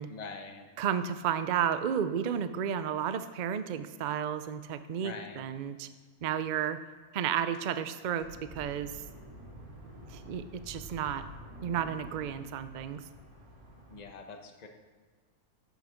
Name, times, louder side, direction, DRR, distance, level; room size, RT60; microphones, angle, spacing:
voice 1, 0.1-0.7 5.0-5.5 13.9-14.7, left 4 dB, 30° left, 4 dB, 1.0 m, -44 dB
voice 2, 0.8-5.9 6.2-6.8 7.1-9.0 10.1-11.2 11.6-13.0, right 8 dB, 75° right, 11 dB, 0.4 m, -32 dB
sound 1, 8.2-14.0, equal, 25° right, 3.3 m, -49 dB
13.0 x 6.5 x 5.1 m, 1.5 s
omnidirectional pair, 1.5 m